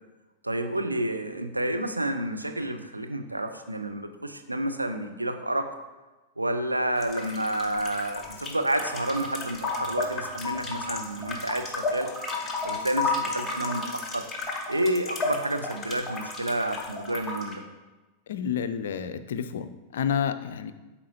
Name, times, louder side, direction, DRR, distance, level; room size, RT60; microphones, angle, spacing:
voice 1, 0.4-5.7 6.4-12.1 12.6-14.3 14.7-17.6, right 1 dB, 85° right, 6 dB, 0.5 m, -29 dB
sound 1, 7.0-17.6, left 3 dB, 15° left, 1.1 m, -33 dB
voice 2, 18.3-20.7, left 8 dB, 60° left, 11 dB, 0.4 m, -30 dB
11.5 x 4.3 x 2.7 m, 1.1 s
figure-of-eight pair, 90°, 0 cm